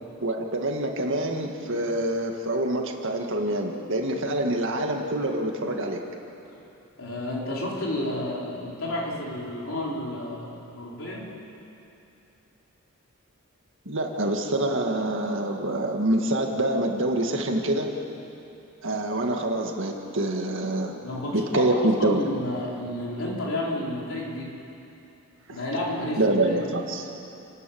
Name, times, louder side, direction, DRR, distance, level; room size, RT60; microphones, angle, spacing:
voice 1, 0.2-6.0 13.9-17.9 18.8-20.9 21.3-22.2 25.5-25.6 26.2-27.1, right 1 dB, 55° right, 2 dB, 2.0 m, -26 dB
voice 2, 7.0-11.3 21.0-24.6 25.5-26.4, left 1 dB, 65° left, -4 dB, 4.4 m, -31 dB
29.0 x 12.5 x 8.7 m, 2.8 s
head